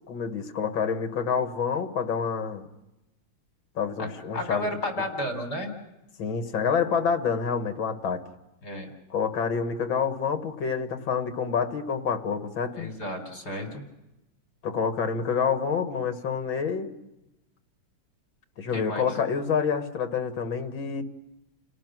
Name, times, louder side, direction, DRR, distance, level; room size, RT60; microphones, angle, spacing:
voice 1, 0.1-2.7 3.8-4.7 6.2-8.2 9.1-12.9 14.6-16.9 18.6-21.0, left 6 dB, 75° left, 7 dB, 2.4 m, -27 dB
voice 2, 4.0-5.7 8.6-8.9 12.7-13.8 18.7-19.1, left 1 dB, 55° left, 5 dB, 4.3 m, -32 dB
30.0 x 18.0 x 6.2 m, 0.95 s
omnidirectional pair, 2.1 m